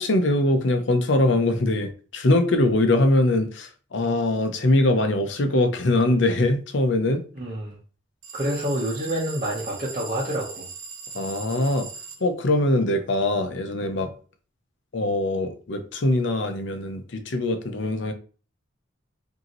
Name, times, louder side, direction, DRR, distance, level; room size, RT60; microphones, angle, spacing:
voice 1, 0.0-7.2 11.1-11.9 12.2-14.1 14.9-18.1, left 2 dB, 65° left, 0.7 m, -22 dB
voice 2, 7.4-7.8 8.3-10.7, right 1 dB, 35° right, 0.9 m, -28 dB
sound 1, 8.2-12.2, right 5 dB, 85° right, 1.0 m, -39 dB
5.2 x 2.8 x 3.0 m
head